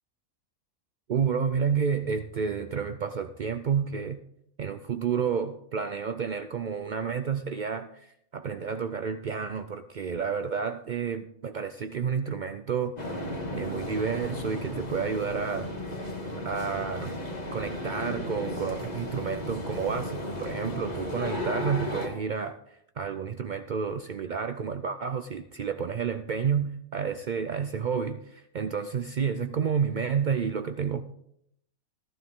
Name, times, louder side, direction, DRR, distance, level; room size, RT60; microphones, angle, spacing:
voice 1, 1.1-4.2 4.6-13.2 13.5-15.7 16.0-16.1 16.4-17.1 17.5-22.6 23.0-31.0, right 6 dB, 85° right, 9 dB, 0.4 m, -30 dB
sound 1, 13.0-22.1, left 1 dB, 30° left, 1.8 m, -34 dB
14.0 x 12.0 x 3.6 m, 0.73 s
omnidirectional pair, 1.5 m